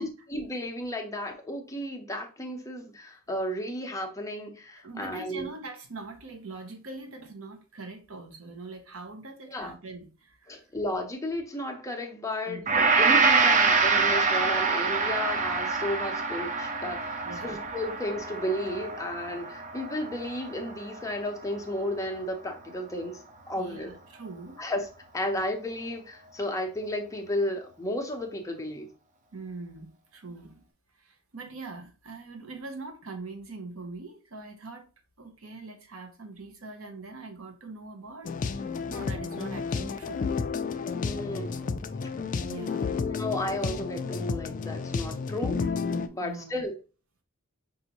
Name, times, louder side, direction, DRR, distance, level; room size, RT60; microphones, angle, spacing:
voice 1, 0.0-5.5 9.5-9.7 10.5-23.2 23.5-23.9 24.6-24.9 25.1-28.9 41.0-41.8 43.0-45.7 46.1-46.7, left 1 dB, 15° left, 0.7 m, -33 dB
voice 2, 4.8-10.7 12.5-12.7 17.2-17.6 23.6-24.6 29.3-30.6 31.0-34.9 35.2-40.2 42.3-42.9 46.2-46.6, right 3 dB, 75° right, 0.9 m, -42 dB
Gong, 12.7-21.1 21.4-21.6, right 4 dB, 35° right, 0.5 m, -26 dB
sound 1, 38.2-46.1, left 5 dB, 40° left, 0.3 m, -31 dB
5.4 x 2.6 x 2.9 m
head